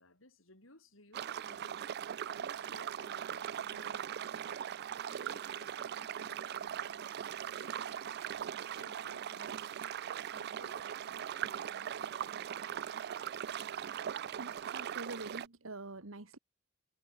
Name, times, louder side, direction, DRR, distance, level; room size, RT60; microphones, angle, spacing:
voice 1, 0.0-4.6 5.0-7.2 7.5-8.2 8.8-9.7 10.3-12.5, left 2 dB, 75° left, 7.9 m, -60 dB
sound 1, 1.1-15.5, right 9 dB, 55° right, 0.4 m, -40 dB
voice 2, 14.4-16.4, right 2 dB, 80° right, 1.9 m, -45 dB
head